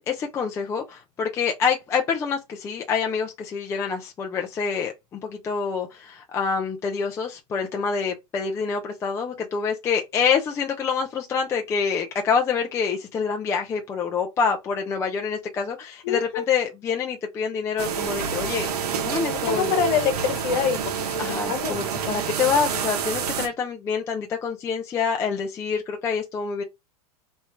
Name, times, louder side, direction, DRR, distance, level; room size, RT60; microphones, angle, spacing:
voice 1, 0.0-18.7 19.0-19.7 21.2-26.6, left 6 dB, 15° left, 0.4 m, -26 dB
voice 2, 16.0-16.5 19.5-21.8, left 7 dB, 45° left, 1.1 m, -26 dB
sound 1, 17.8-23.5, right 7 dB, 85° right, 1.0 m, -28 dB
3.1 x 2.3 x 4.3 m
supercardioid pair, 150°, 19 cm